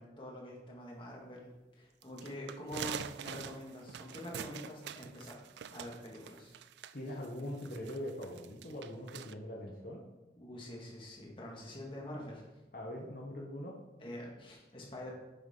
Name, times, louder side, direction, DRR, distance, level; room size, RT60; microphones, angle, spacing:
voice 1, 0.0-6.6 10.4-12.4 14.0-15.1, left 1 dB, 30° left, -3 dB, 2.1 m, -46 dB
sound 1, 2.0-9.3, right 8 dB, 70° right, 0.3 m, -45 dB
voice 2, 6.9-10.0 12.7-13.7, left 1 dB, 50° left, -2 dB, 1.2 m, -42 dB
9.4 x 7.2 x 3.9 m, 1.1 s
head